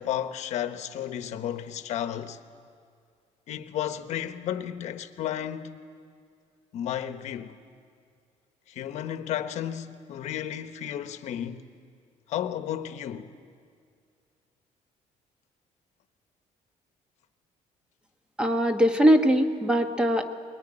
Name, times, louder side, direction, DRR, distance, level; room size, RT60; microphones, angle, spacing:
voice 1, 0.0-2.4 3.5-5.8 6.7-7.6 8.7-11.7 12.3-13.3, left 10 dB, 60° left, 1.0 m, -33 dB
voice 2, 18.4-20.2, equal, 5° right, 1.1 m, -21 dB
22.0 x 20.5 x 9.9 m
cardioid pair, 175°, 13 cm